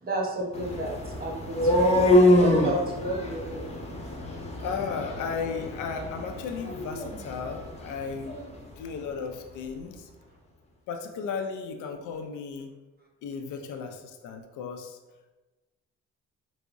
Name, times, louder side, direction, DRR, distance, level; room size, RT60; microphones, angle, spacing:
voice 1, 0.0-3.7, right 1 dB, 30° right, -2 dB, 0.9 m, -32 dB
sound 1, 0.5-8.5, left 1 dB, 20° left, 0.6 m, -25 dB
voice 2, 4.6-8.3 8.8-10.1 10.9-12.7 13.2-15.0, left 5 dB, 80° left, 5 dB, 0.5 m, -35 dB
4.6 x 2.0 x 2.5 m, 1.2 s
cardioid pair, 90°, 30 cm